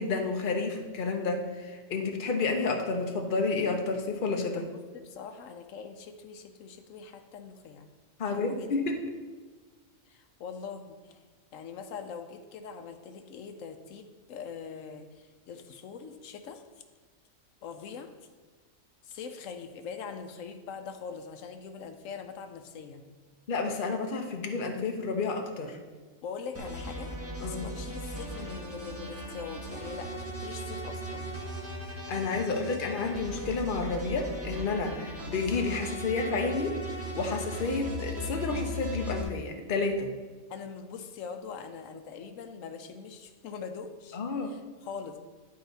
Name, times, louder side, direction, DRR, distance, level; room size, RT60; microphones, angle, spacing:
voice 1, 0.0-4.7 8.2-9.0 23.5-25.8 27.4-27.7 32.1-40.1 44.1-44.5, left 3 dB, 45° left, 3 dB, 1.0 m, -30 dB
voice 2, 4.6-7.9 8.3-8.7 10.1-11.2 11.5-16.6 17.6-18.1 19.0-23.1 26.2-27.1 27.4-31.3 40.5-45.2, left 6 dB, 85° left, 7 dB, 1.0 m, -42 dB
sound 1, 26.5-39.2, equal, 10° right, 1.5 m, -38 dB
10.5 x 4.7 x 4.0 m, 1.4 s
omnidirectional pair, 1.3 m